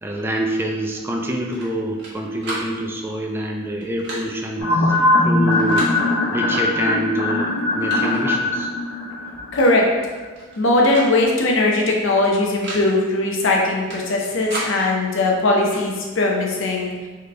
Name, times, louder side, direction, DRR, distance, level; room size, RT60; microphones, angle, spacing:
voice 1, 0.0-4.9 5.2-5.9 6.3-8.7, right 1 dB, 10° right, 1 dB, 0.4 m, -26 dB
sound 1, 1.5-2.1 2.4-2.7 3.8-4.2 5.5-5.9 7.0-7.1 7.5-8.2 9.6-9.7 10.0-10.6 10.9-11.1 11.4-11.5 12.4-12.8 13.9-14.7 15.6-15.9, right 2 dB, 55° right, 1.3 m, -32 dB
sound 2, 4.6-10.0 10.2-10.3, left 2 dB, 90° left, 1.3 m, -20 dB
voice 2, 9.5-9.8 10.6-16.9, left 2 dB, 65° left, -1 dB, 0.7 m, -19 dB
3.9 x 3.3 x 3.3 m, 1.4 s
head